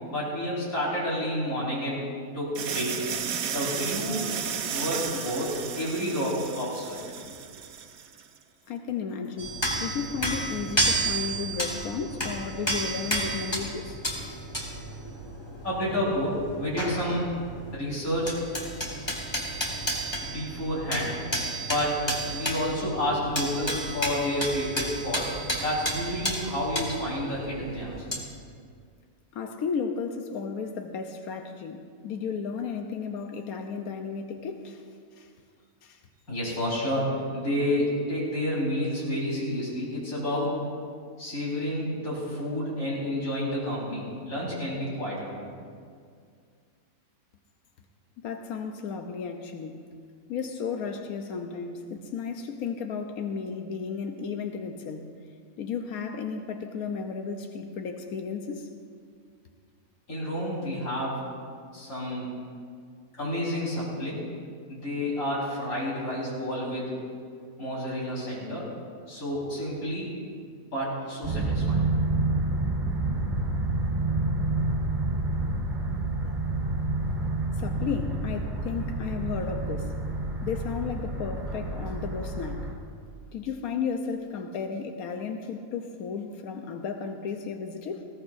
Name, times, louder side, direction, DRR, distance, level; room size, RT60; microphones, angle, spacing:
voice 1, 0.1-3.1 3.5-4.3 4.7-7.0 15.6-17.3 17.7-18.4 20.2-21.2 21.6-27.9 36.3-40.5 41.2-45.4 60.1-61.2 61.7-62.3 63.2-64.2 64.7-66.9 67.6-68.7 69.1-70.1 70.7-71.9, equal, 75° left, -6 dB, 4.8 m, -30 dB
sound 1, 2.5-8.2, right 8 dB, 80° right, 1.2 m, -34 dB
voice 2, 8.7-9.5 9.8-14.0 27.9-28.1 29.3-34.8 35.2-35.3 35.8-36.0 48.2-49.9 50.3-55.1 55.6-58.7 77.5-80.0 80.4-82.7 83.3-88.1, left 5 dB, 90° left, 4 dB, 1.3 m, -34 dB
sound 2, 9.4-17.8 18.0-28.2, right 1 dB, 20° left, 2.1 m, -32 dB
sound 3, 71.2-82.7, right 2 dB, 35° right, 2.6 m, -28 dB
20.5 x 16.5 x 2.6 m, 2.2 s
omnidirectional pair, 1.5 m